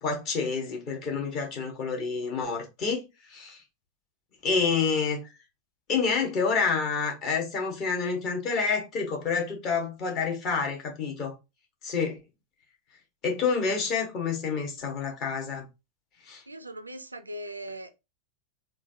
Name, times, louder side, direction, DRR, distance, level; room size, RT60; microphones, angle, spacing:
voice 1, 0.0-3.0 3.3-3.6 4.4-5.2 5.9-11.3 11.8-12.2 13.2-15.6 16.3-16.4, left 5 dB, 35° left, 1.3 m, -28 dB
voice 2, 16.5-18.0, right 1 dB, 80° right, 0.4 m, -39 dB
3.8 x 2.4 x 2.7 m
figure-of-eight pair, 90°, 0 cm